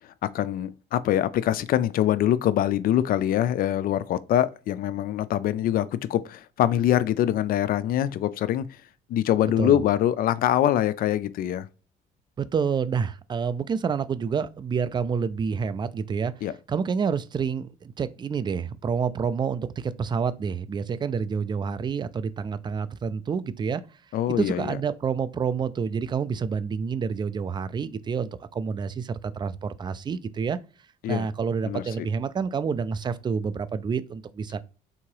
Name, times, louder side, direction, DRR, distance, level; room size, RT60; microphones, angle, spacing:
voice 1, 0.2-8.7 9.1-11.7 16.4-16.5 24.1-24.8 31.0-31.3 31.6-31.8, left 11 dB, 60° left, 0.4 m, -24 dB
voice 2, 12.4-16.3 16.7-23.8 24.3-30.6 31.1-34.6, right 6 dB, 25° right, 0.4 m, -28 dB
3.7 x 2.9 x 4.6 m
cardioid pair, 110°, 17 cm